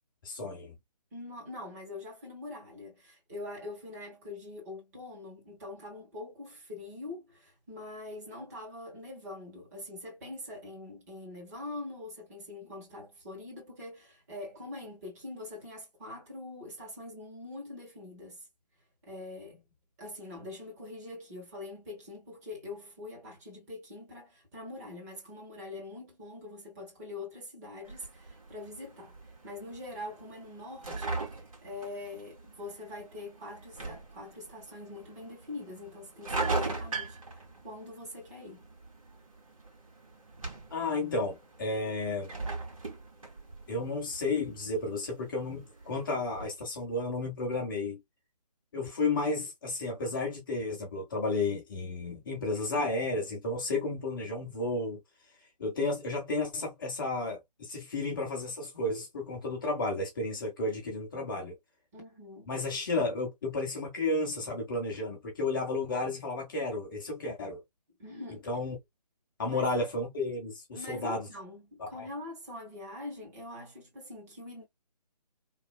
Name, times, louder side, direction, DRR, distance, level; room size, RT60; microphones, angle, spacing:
voice 1, 0.2-0.7 40.7-42.3 43.7-48.0 48.7-55.0 55.6-61.5 62.5-67.6 68.5-68.8 69.4-71.3 71.8-72.1, left 2 dB, 30° left, 0.9 m, -32 dB
voice 2, 1.1-18.4 19.0-19.6 20.0-29.2 29.4-31.3 31.6-38.7 61.9-62.5 68.0-68.5 69.5-69.6 70.7-74.6, left 2 dB, 25° right, 1.4 m, -44 dB
sound 1, 27.8-46.5, right 3 dB, 50° right, 1.5 m, -41 dB
3.1 x 2.1 x 2.3 m
figure-of-eight pair, 150°, 21 cm